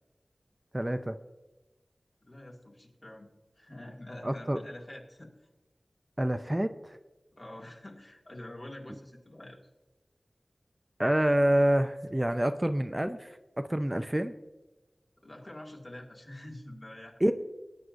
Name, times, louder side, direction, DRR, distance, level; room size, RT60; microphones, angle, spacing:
voice 1, 0.7-1.2 4.2-4.6 6.2-7.0 11.0-14.3 17.2-17.3, right 1 dB, 15° right, 8 dB, 0.5 m, -27 dB
voice 2, 2.2-5.3 7.3-9.6 15.2-17.2, left 1 dB, 50° left, -1 dB, 2.2 m, -46 dB
18.5 x 9.4 x 2.6 m, 1.1 s
wide cardioid pair, 60°, 0 cm